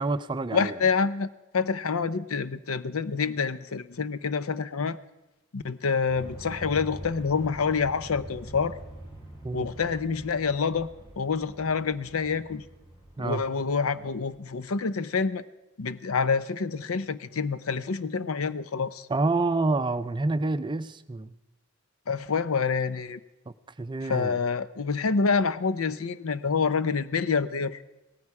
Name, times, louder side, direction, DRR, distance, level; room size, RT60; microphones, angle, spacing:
voice 1, 0.0-0.7 9.4-9.7 13.2-13.4 19.1-21.3 23.5-24.4, right 3 dB, 20° right, 13 dB, 0.5 m, -28 dB
voice 2, 0.5-5.0 5.5-8.8 9.5-10.9 11.2-12.6 13.2-15.4 15.8-19.1 22.1-23.2 24.0-27.8, left 5 dB, 85° left, 15 dB, 0.7 m, -27 dB
sound 1, 6.1-14.5, equal, 25° left, 6.3 m, -45 dB
17.5 x 14.0 x 4.8 m, 1.0 s
head